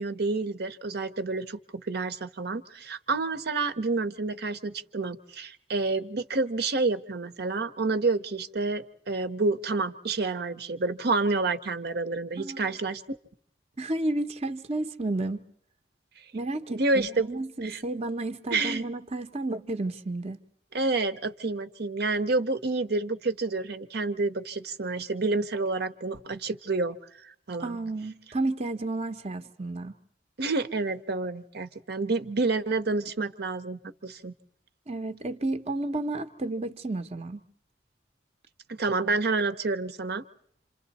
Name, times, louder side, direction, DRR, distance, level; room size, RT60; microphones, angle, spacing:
voice 1, 0.0-13.2 16.7-17.3 17.6-17.8 18.5-18.9 20.7-27.8 30.4-34.3 38.7-40.2, right 3 dB, 65° right, 0.8 m, -29 dB
voice 2, 13.8-15.4 16.3-20.4 27.6-29.9 34.9-37.4, right 2 dB, 35° right, 0.8 m, -32 dB
27.5 x 27.0 x 4.1 m
head